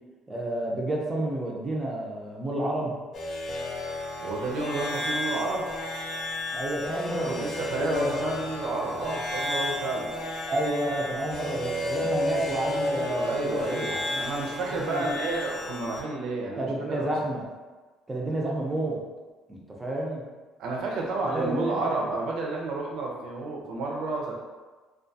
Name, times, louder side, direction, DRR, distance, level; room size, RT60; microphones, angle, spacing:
voice 1, 0.3-3.0 6.5-7.5 7.7-8.1 10.5-15.0 16.6-17.4 18.1-19.0 19.5-20.2 21.2-21.9, right 1 dB, 15° right, -2 dB, 0.5 m, -30 dB
sound 1, 3.1-16.0, left 1 dB, 50° left, 0.5 m, -32 dB
voice 2, 4.2-5.7 7.1-10.1 12.9-17.1 20.6-24.3, right 3 dB, 70° right, -1 dB, 0.5 m, -31 dB
2.3 x 2.3 x 2.6 m, 1.3 s
cardioid pair, 125°, 0 cm